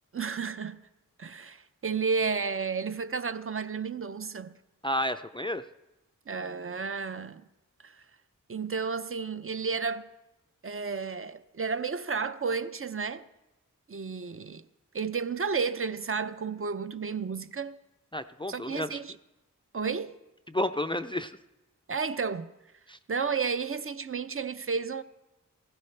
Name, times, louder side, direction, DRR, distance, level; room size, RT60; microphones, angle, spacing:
voice 1, 0.1-0.8 1.2-4.5 6.3-7.4 7.8-8.0 8.5-10.1 10.6-13.2 13.9-14.6 14.9-17.8 18.5-19.1 19.7-20.1 21.9-22.5 23.1-25.0, right 5 dB, 40° right, 0.5 m, -32 dB
voice 2, 4.8-5.6 18.1-19.0 20.5-21.4 22.9-23.0, left 1 dB, 15° left, 0.4 m, -31 dB
16.5 x 15.5 x 3.3 m
wide cardioid pair, 75°, 33 cm